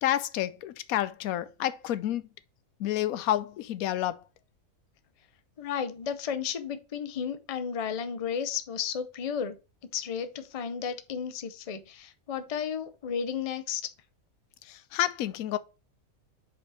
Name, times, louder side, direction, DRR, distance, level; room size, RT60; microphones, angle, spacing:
voice 1, 0.0-2.2 2.8-4.2 14.7-15.6, left 13 dB, 90° left, 1.0 m, -29 dB
voice 2, 5.6-9.6 9.9-13.8, left 7 dB, 40° left, 0.5 m, -33 dB
5.1 x 4.5 x 4.7 m
omnidirectional pair, 1.4 m